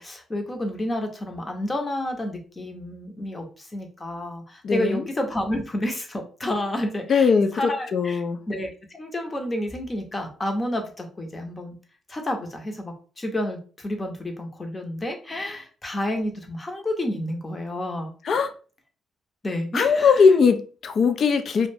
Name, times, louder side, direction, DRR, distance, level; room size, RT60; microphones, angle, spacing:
voice 1, 0.0-11.7 12.1-18.1 19.4-20.1, left 1 dB, 25° left, 0.7 m, -30 dB
voice 2, 4.6-5.1 7.1-8.4 18.2-18.5 19.7-21.7, left 5 dB, 55° left, 0.4 m, -20 dB
2.3 x 2.1 x 3.3 m
cardioid pair, 90°, 0 cm